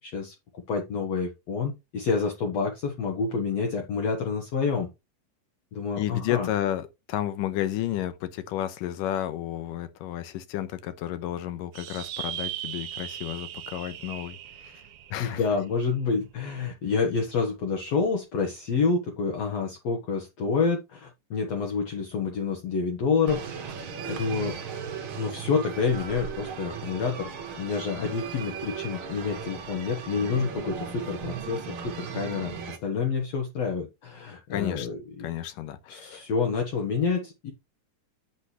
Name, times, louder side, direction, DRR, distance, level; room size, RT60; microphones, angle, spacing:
voice 1, 0.0-4.9 5.7-6.5 15.2-23.7 24.1-24.6 25.2-27.3 27.6-35.3 35.9-37.5, left 5 dB, 60° left, 2.3 m, -28 dB
voice 2, 6.0-14.8 15.1-15.4 34.5-34.9 35.2-36.3, left 12 dB, 80° left, 2.6 m, -32 dB
sound 1, 11.7-16.5, right 12 dB, 75° right, 1.5 m, -39 dB
sound 2, 23.3-32.8, right 7 dB, 50° right, 1.7 m, -37 dB
8.3 x 7.8 x 3.2 m
omnidirectional pair, 3.8 m